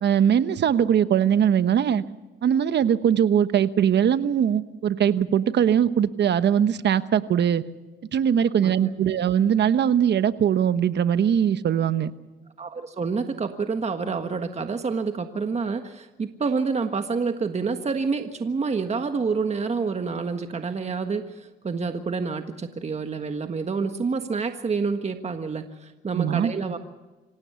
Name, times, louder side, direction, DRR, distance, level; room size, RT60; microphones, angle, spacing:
voice 1, 0.0-2.0 2.4-7.6 8.1-12.1 26.1-26.5, right 9 dB, 60° right, 13 dB, 1.1 m, -21 dB
voice 2, 8.5-8.9 12.6-26.8, right 4 dB, 35° right, 7 dB, 1.5 m, -28 dB
26.0 x 17.0 x 7.1 m, 1.2 s
cardioid pair, 90°, 20 cm